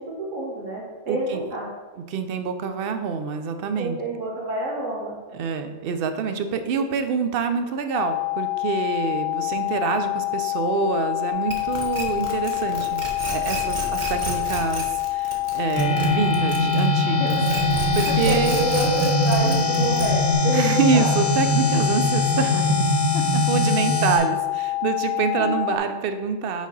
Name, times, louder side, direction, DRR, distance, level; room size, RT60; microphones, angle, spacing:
voice 1, 0.0-1.7 3.8-5.2 17.0-17.6 18.1-21.1 25.4-25.6, right 1 dB, 80° right, -5 dB, 2.1 m, -28 dB
voice 2, 1.1-1.4 2.1-4.0 5.3-17.4 17.9-18.6 20.5-26.7, right 5 dB, 60° right, 8 dB, 0.6 m, -26 dB
sound 1, 7.9-25.8, left 18 dB, 90° left, 1.0 m, -27 dB
sound 2, 11.5-17.0 17.3-20.3, right 2 dB, 40° right, 1.0 m, -32 dB
sound 3, 15.7-24.2, equal, 5° right, 1.7 m, -22 dB
7.2 x 4.1 x 4.0 m, 1.3 s
omnidirectional pair, 1.3 m